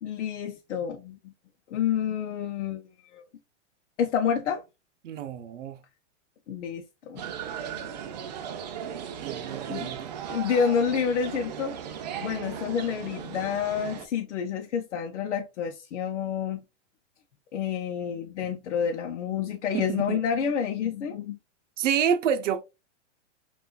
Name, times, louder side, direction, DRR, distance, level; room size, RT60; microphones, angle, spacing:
voice 1, 0.0-1.3 1.7-3.2 4.0-4.6 6.5-7.2 7.8-7.9 9.7-9.9 10.3-11.8 12.2-16.6 17.5-21.4, left 7 dB, 75° left, 0.7 m, -29 dB
voice 2, 5.0-5.8 9.2-10.1 19.7-20.2 21.8-22.6, right 8 dB, 85° right, 0.7 m, -28 dB
sound 1, 7.2-14.1, right 8 dB, 35° right, 0.5 m, -37 dB
5.6 x 2.5 x 2.3 m
supercardioid pair, 170°, 36 cm